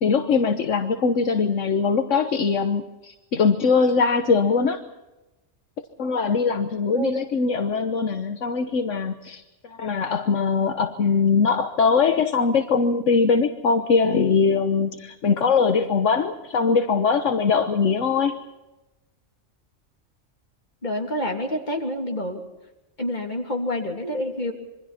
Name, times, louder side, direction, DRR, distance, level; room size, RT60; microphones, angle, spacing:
voice 1, 0.0-4.8 6.0-18.4, left 5 dB, 75° left, 7 dB, 1.5 m, -21 dB
voice 2, 20.8-22.4 23.0-24.5, left 1 dB, 35° left, 2 dB, 3.3 m, -27 dB
27.0 x 23.5 x 4.3 m, 1.0 s
omnidirectional pair, 1.3 m